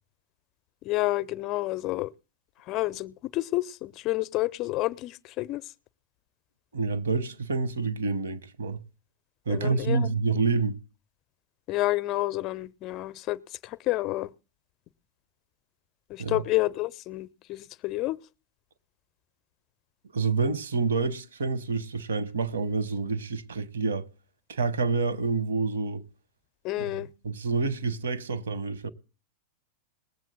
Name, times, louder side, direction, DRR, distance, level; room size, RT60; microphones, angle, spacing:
voice 1, 0.8-2.1 2.7-5.6 9.5-10.0 11.7-14.3 16.1-18.2 26.6-27.1, left 18 dB, 40° left, 0.5 m, -29 dB
voice 2, 6.7-8.8 9.5-10.8 16.2-16.4 20.1-24.1 24.5-26.0 26.8-26.9 27.2-28.9, right 4 dB, 65° right, 1.0 m, -28 dB
20.5 x 7.6 x 3.8 m
figure-of-eight pair, 90°, 0 cm